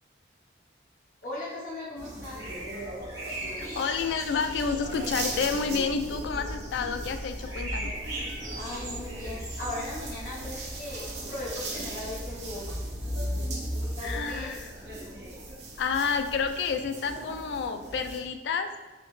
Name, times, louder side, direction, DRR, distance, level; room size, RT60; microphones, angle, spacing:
voice 1, 1.2-2.4 8.5-12.8 14.0-14.6, left 1 dB, 45° left, -8 dB, 0.8 m, -38 dB
sound 1, 2.0-18.2, right 1 dB, 70° right, 0.9 m, -37 dB
sound 2, 2.3-11.0, right 2 dB, 20° right, 1.0 m, -41 dB
voice 2, 3.6-7.9 14.0-14.7 15.8-18.7, left 5 dB, 70° left, 8 dB, 0.3 m, -29 dB
sound 3, 4.6-16.5, right 1 dB, 90° right, 0.5 m, -47 dB
4.1 x 2.9 x 3.1 m, 1.2 s
head